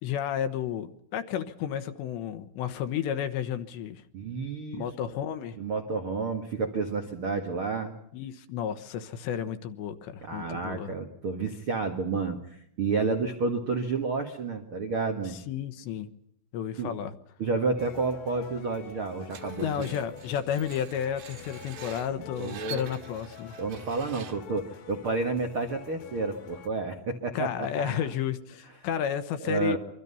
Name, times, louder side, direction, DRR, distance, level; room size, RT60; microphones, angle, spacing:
voice 1, 0.0-4.0 4.7-5.6 8.1-10.9 15.3-16.1 16.5-17.1 19.6-23.5 27.3-29.8, left 9 dB, 75° left, 9 dB, 3.1 m, -32 dB
voice 2, 4.1-4.8 5.6-7.9 10.2-15.4 16.8-16.9 17.4-19.9 22.4-22.8 23.6-28.0 29.4-29.8, right 4 dB, 85° right, 5 dB, 1.1 m, -30 dB
sound 1, 17.8-26.7, left 7 dB, 60° left, 2.7 m, -47 dB
Screech, 19.3-24.6, right 9 dB, 65° right, 3.7 m, -46 dB
25.5 x 24.0 x 5.6 m, 0.71 s
omnidirectional pair, 5.4 m